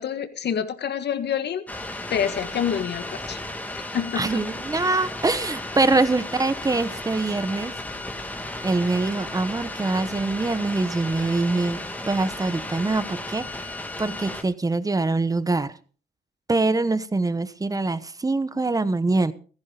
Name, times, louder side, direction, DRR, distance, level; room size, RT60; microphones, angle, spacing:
voice 1, 0.0-1.6 2.1-3.4 3.7-4.4 5.9-6.1, left 8 dB, 60° left, 10 dB, 1.6 m, -27 dB
sound 1, 1.7-14.4, left 1 dB, 10° left, 2.1 m, -34 dB
voice 2, 4.2-7.7 8.6-13.7 14.0-15.7 16.5-19.3, right 3 dB, 15° right, 15 dB, 1.0 m, -24 dB
15.5 x 14.5 x 3.9 m, 0.40 s
cardioid pair, 90°, 20 cm